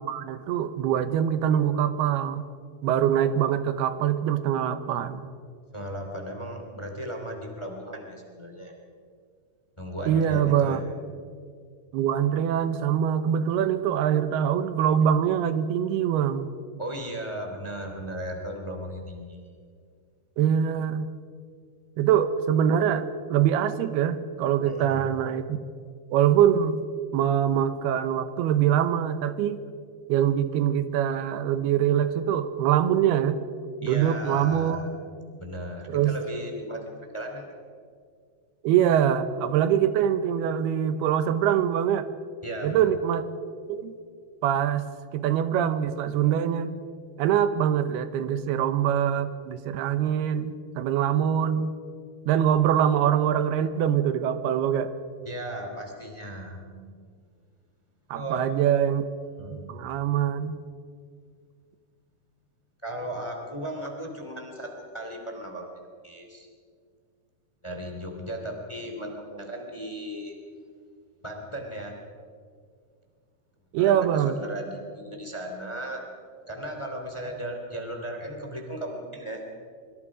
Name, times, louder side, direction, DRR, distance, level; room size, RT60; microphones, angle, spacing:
voice 1, 0.0-2.5 2.8-5.2 10.1-10.8 11.9-16.5 20.4-21.1 22.0-25.6 26.1-26.8 27.1-29.6 30.1-33.4 33.8-34.8 35.9-36.2 38.6-42.1 42.6-43.3 43.7-43.9 44.4-44.9 45.1-46.7 47.2-51.7 52.3-54.9 58.1-59.0 59.5-60.6 73.7-74.4, right 9 dB, 80° right, 11 dB, 2.9 m, -24 dB
voice 2, 5.7-8.7 9.8-10.8 16.8-19.4 24.6-25.0 33.8-34.9 35.4-37.5 42.4-42.9 55.2-57.0 58.1-58.5 59.4-59.7 62.8-65.7 66.0-66.5 67.6-70.4 71.2-71.9 73.8-76.0 76.5-79.4, right 1 dB, 10° left, 3 dB, 2.4 m, -36 dB
25.0 x 24.5 x 5.1 m, 2.1 s
omnidirectional pair, 4.6 m